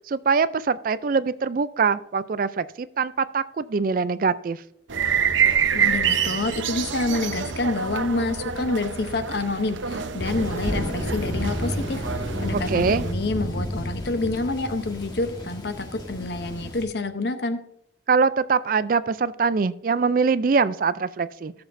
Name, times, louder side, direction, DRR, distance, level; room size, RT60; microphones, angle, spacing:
voice 1, 0.1-4.6 12.5-13.1 18.1-21.5, right 5 dB, 45° right, 15 dB, 0.4 m, -23 dB
sound 1, 4.9-13.1, right 7 dB, 85° right, 0.8 m, -26 dB
voice 2, 5.7-12.0 12.4-17.6, left 2 dB, 60° left, 9 dB, 0.8 m, -28 dB
Thunder, 10.2-16.8, left 1 dB, 20° left, 1.5 m, -31 dB
17.0 x 7.0 x 2.6 m, 0.76 s
head